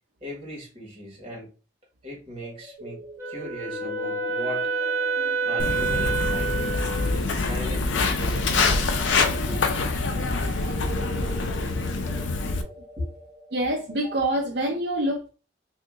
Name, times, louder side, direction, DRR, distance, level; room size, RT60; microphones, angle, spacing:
voice 1, 0.2-1.5 2.0-4.7 5.4-6.8 7.1-9.1 9.5-9.6 13.0-13.1, equal, 30° right, 1.4 m, -37 dB
sound 1, 2.4-14.3, right 2 dB, 80° right, 1.0 m, -41 dB
Wind instrument woodwind instrument, 3.2-7.2, right 4 dB, 15° right, 0.8 m, -28 dB
Walk footsteps, 5.6-12.6, left 3 dB, 85° left, 0.5 m, -25 dB
voice 2, 13.5-15.3, right 1 dB, 60° right, 0.6 m, -26 dB
2.7 x 2.6 x 3.6 m
head